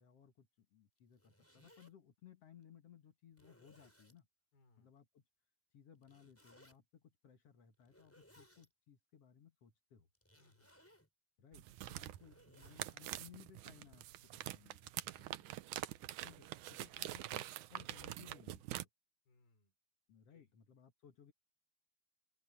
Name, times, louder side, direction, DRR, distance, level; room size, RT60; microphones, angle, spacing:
voice 1, 0.0-4.3 4.8-5.2 5.7-10.1 11.4-15.6 16.2-18.9 20.1-21.3, left 9 dB, 55° left, 1.9 m, -62 dB
Zipper (clothing), 1.0-1.9 2.6-2.7 3.3-4.2 6.0-6.8 7.8-8.7 10.1-11.1 11.9-13.0, equal, 5° left, 5.8 m, -66 dB
voice 2, 4.5-4.9 10.4-10.9 12.7-12.8 15.9-16.1 19.3-19.7 20.3-20.5, left 3 dB, 75° left, 7.3 m, -73 dB
sound 1, 11.5-18.8, right 15 dB, 80° right, 1.8 m, -45 dB
open air
omnidirectional pair, 4.4 m